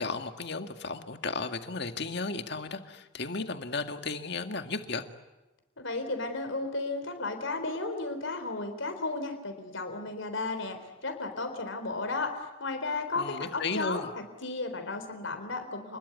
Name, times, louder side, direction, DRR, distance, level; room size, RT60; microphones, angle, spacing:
voice 1, 0.0-5.0 13.2-14.1, left 3 dB, 55° left, 7 dB, 1.9 m, -34 dB
voice 2, 5.8-12.3 12.6-16.0, left 3 dB, 70° left, 6 dB, 4.0 m, -34 dB
29.5 x 21.5 x 9.4 m, 1.1 s
head